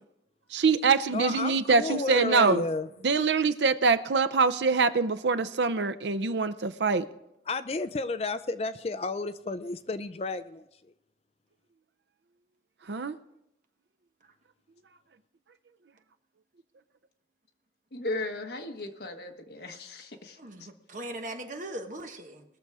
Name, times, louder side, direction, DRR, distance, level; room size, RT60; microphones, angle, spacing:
voice 1, 0.5-2.6 3.0-7.0 12.9-13.1, right 4 dB, 85° right, 13 dB, 0.6 m, -24 dB
voice 2, 1.1-2.9 7.5-10.9, left 3 dB, 35° left, 13 dB, 0.4 m, -32 dB
voice 3, 17.9-20.7, left 2 dB, 65° left, 5 dB, 1.3 m, -37 dB
voice 4, 20.4-22.4, right 1 dB, 45° right, 4 dB, 1.2 m, -39 dB
20.5 x 6.9 x 4.8 m, 0.84 s
head